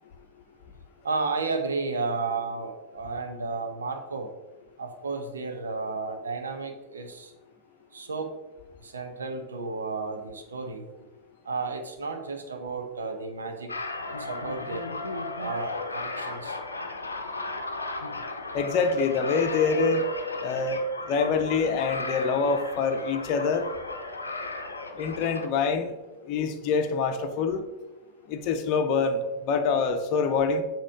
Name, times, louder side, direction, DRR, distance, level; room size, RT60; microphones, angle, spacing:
voice 1, 1.0-4.3 4.8-7.3 7.9-8.3 8.8-10.9 11.5-13.7 14.3-14.8 15.4-16.6, right 4 dB, 70° right, 5 dB, 0.8 m, -32 dB
sound 1, 13.7-25.5, left 2 dB, 80° left, 0.6 m, -35 dB
voice 2, 18.5-20.1 20.4-23.7 25.0-25.9 26.2-27.6 28.3-30.6, left 4 dB, 40° left, 7 dB, 0.7 m, -25 dB
7.4 x 3.0 x 4.8 m, 1.1 s
figure-of-eight pair, 90°, 0 cm